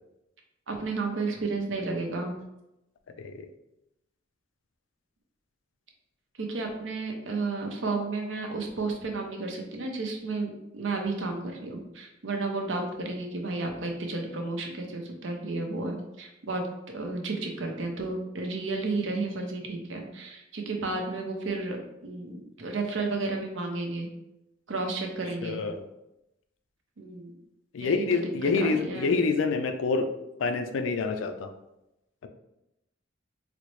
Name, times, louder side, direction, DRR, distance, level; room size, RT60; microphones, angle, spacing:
voice 1, 0.7-2.3 6.4-16.6 16.9-24.1 24.7-25.6 27.0-27.4 27.8-28.2 28.5-29.2, right 3 dB, 75° right, 2 dB, 0.6 m, -32 dB
voice 2, 3.2-3.5 25.4-25.8 27.7-30.1 30.4-31.5, left 4 dB, 80° left, 8 dB, 0.4 m, -27 dB
4.0 x 2.0 x 3.1 m, 0.89 s
head